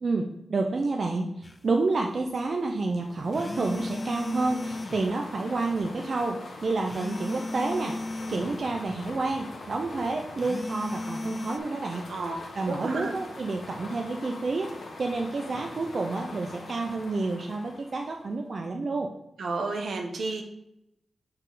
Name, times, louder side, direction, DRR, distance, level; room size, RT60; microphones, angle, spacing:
voice 1, 0.0-8.0 8.3-12.1 12.5-19.1, right 3 dB, 50° right, 2 dB, 0.5 m, -29 dB
sound 1, 1.4-1.6 3.3-5.1 6.8-8.6 10.4-11.6, left 2 dB, 25° left, 0.4 m, -35 dB
sound 2, 2.9-18.4, left 2 dB, 65° left, 1.1 m, -43 dB
voice 2, 12.7-13.1 19.4-20.4, right 3 dB, 75° right, 3 dB, 0.9 m, -31 dB
6.1 x 4.3 x 3.9 m, 0.85 s
wide cardioid pair, 110°, 0 cm